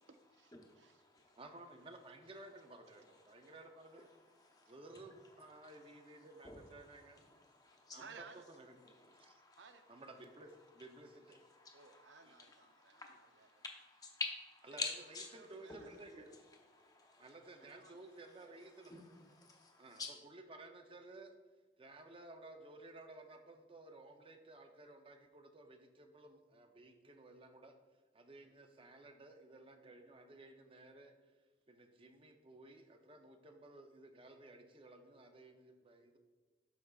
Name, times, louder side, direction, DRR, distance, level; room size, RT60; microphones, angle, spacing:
voice 1, 0.0-1.4 3.3-3.5 4.5-4.7 7.5-8.5 9.6-9.8 11.7-13.6 15.3-16.0 17.6-18.7 28.4-28.6, right 5 dB, 80° right, 9 dB, 0.5 m, -60 dB
voice 2, 0.6-1.4 2.8-8.0 8.8-14.3 14.8-20.1, left 4 dB, 20° left, 1 dB, 0.8 m, -50 dB
voice 3, 1.4-4.1 4.7-7.2 7.9-8.1 8.6-8.8 9.2-9.4 9.9-11.4 12.3-12.4 14.7-14.8 15.3-16.4 17.2-19.1 19.4-19.5 19.8-20.0 20.3-21.3 21.8-27.7 28.1-31.1 31.7-36.2, right 2 dB, 30° right, 5 dB, 0.6 m, -56 dB
12.0 x 4.9 x 2.4 m, 1.3 s
head